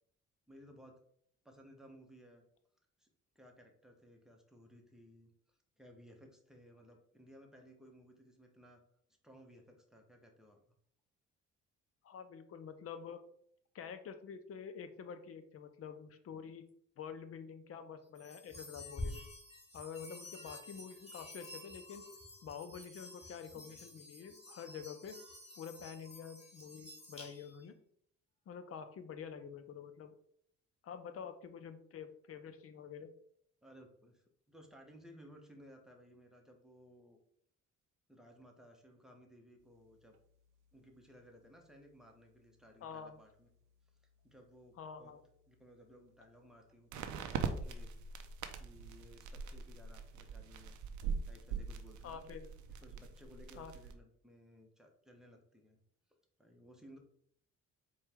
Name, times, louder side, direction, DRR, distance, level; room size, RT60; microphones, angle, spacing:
voice 1, 0.5-0.9 1.4-2.4 3.0-3.1 3.3-8.8 9.2-10.6 33.6-37.2 38.1-40.2 40.7-43.5 44.2-45.1 45.5-47.0 47.3-47.9 48.5-50.8 51.3-52.4 52.8-55.8 56.4-57.0, equal, ahead, 2 dB, 0.8 m, -59 dB
voice 2, 12.0-13.2 13.7-16.7 17.0-19.2 19.7-22.0 22.4-25.2 25.6-27.7 28.5-30.1 30.8-33.1 42.8-43.2 44.8-45.2 52.0-52.5 53.6-53.7, left 7 dB, 50° left, 9 dB, 0.5 m, -48 dB
sound 1, 18.2-27.7, left 1 dB, 20° left, 1.2 m, -50 dB
sound 2, 40.1-40.2 46.9-53.9, right 5 dB, 75° right, 0.5 m, -42 dB
4.5 x 2.3 x 3.4 m, 0.66 s
cardioid pair, 90°, 30 cm